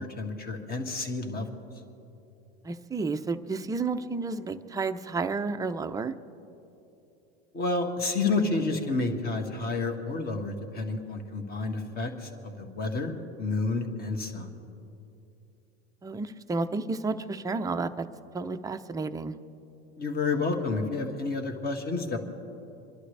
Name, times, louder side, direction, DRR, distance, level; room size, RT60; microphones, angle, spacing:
voice 1, 0.0-1.5 7.5-14.5 20.0-22.2, left 3 dB, 30° left, 3 dB, 1.9 m, -30 dB
voice 2, 2.6-6.1 16.0-18.1 18.3-19.4, right 3 dB, 10° right, 7 dB, 0.5 m, -31 dB
28.0 x 11.5 x 3.3 m, 2.8 s
supercardioid pair, 115°, 32 cm